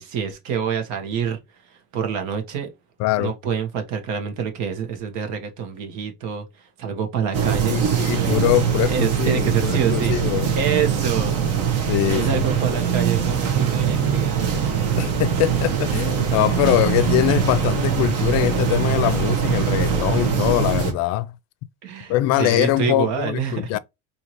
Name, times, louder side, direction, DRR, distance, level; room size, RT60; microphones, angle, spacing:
voice 1, 0.0-1.4 1.7-2.7 3.2-7.8 8.1-8.3 8.8-14.9 15.4-15.5 15.9-16.0 21.8-23.7, right 7 dB, 70° right, 1.4 m, -27 dB
voice 2, 3.0-3.3 7.7-10.5 11.9-12.4 15.0-21.3 22.1-23.8, left 15 dB, 60° left, 0.5 m, -22 dB
sound 1, 7.3-20.9, right 8 dB, 50° right, 1.3 m, -22 dB
4.6 x 2.9 x 2.9 m
cardioid pair, 150°, 30 cm